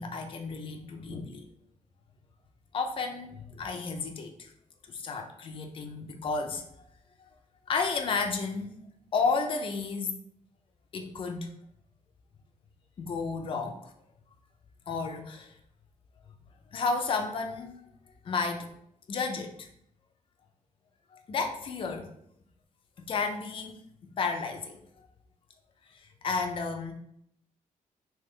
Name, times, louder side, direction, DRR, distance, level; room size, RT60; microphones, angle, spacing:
voice 1, 0.0-1.5 2.7-4.5 4.9-6.6 7.2-7.3 7.7-8.8 9.1-10.2 10.9-11.5 13.0-13.9 14.9-15.5 16.7-17.8 18.2-18.7 19.1-19.7 21.1-22.1 23.0-23.8 24.2-25.1 25.9-26.9, left 4 dB, 40° left, 4 dB, 0.4 m, -32 dB
3.7 x 2.8 x 3.1 m, 0.71 s
wide cardioid pair, 155°, 14 cm